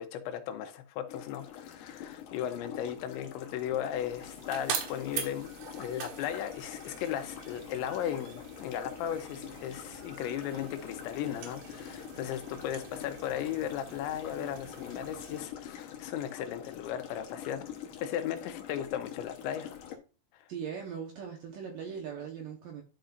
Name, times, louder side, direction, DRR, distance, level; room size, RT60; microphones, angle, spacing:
voice 1, 0.0-5.5 5.8-17.7 18.0-19.7 20.3-20.5, left 10 dB, 85° left, 3.2 m, -36 dB
sound 1, 1.1-20.0, left 9 dB, 65° left, 2.2 m, -45 dB
sound 2, 3.7-15.4, right 8 dB, 85° right, 3.8 m, -43 dB
voice 2, 20.5-22.8, right 7 dB, 70° right, 2.3 m, -40 dB
11.5 x 5.4 x 2.6 m
omnidirectional pair, 5.2 m